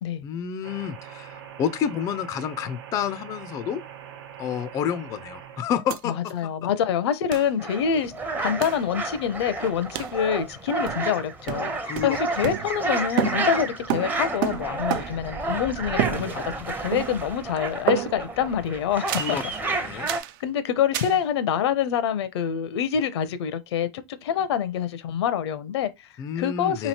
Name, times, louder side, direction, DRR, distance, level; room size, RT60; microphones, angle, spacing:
voice 1, 0.2-3.8 4.4-6.2 11.8-12.2 19.1-20.1 26.2-26.9, left 8 dB, 25° left, 0.3 m, -29 dB
sound 1, 0.6-5.6, right 9 dB, 80° right, 0.9 m, -42 dB
sound 2, 5.9-6.0 6.3-6.4 7.3-7.5 8.6-8.9 9.9-10.2 10.9-11.2 11.5-12.9 13.2-15.3 16.0-16.6 16.9-17.4 17.9-18.4 19.1-19.4 20.1-20.4 20.9-21.2, right 12 dB, 55° right, 0.4 m, -30 dB
voice 2, 6.0-19.4 19.9-20.0 20.4-26.9, left 8 dB, 85° left, 0.6 m, -26 dB
sound 3, 7.6-20.2, right 3 dB, 15° right, 0.6 m, -31 dB
3.1 x 2.8 x 4.2 m
supercardioid pair, 150°, 14 cm